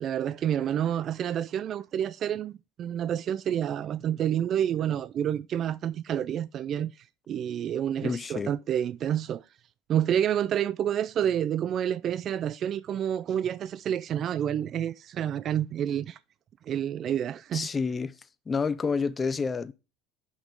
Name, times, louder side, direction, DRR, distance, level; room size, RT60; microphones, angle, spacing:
voice 1, 0.0-6.9 7.3-9.4 9.9-16.2 16.7-17.7, right 10 dB, 40° right, 0.3 m, -29 dB
voice 2, 8.0-8.5 17.5-18.2 18.5-19.7, left 5 dB, 20° left, 0.5 m, -29 dB
6.3 x 6.0 x 3.7 m
supercardioid pair, 120°, 0 cm